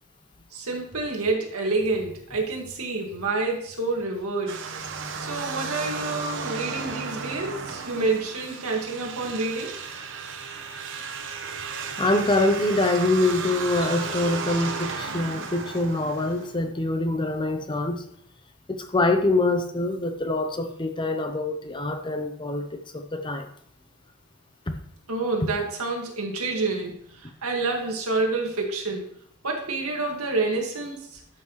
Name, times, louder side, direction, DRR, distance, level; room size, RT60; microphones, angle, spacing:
voice 1, 0.5-4.6 5.2-9.7 25.1-29.0 29.4-31.2, right 3 dB, 80° right, 1 dB, 1.9 m, -28 dB
sound 1, 4.5-16.6, right 5 dB, 60° right, 0.9 m, -34 dB
voice 2, 12.0-18.0 18.7-23.5 24.7-24.8 25.4-25.5, left 2 dB, 20° left, 7 dB, 0.6 m, -25 dB
12.0 x 5.9 x 3.1 m, 0.66 s
head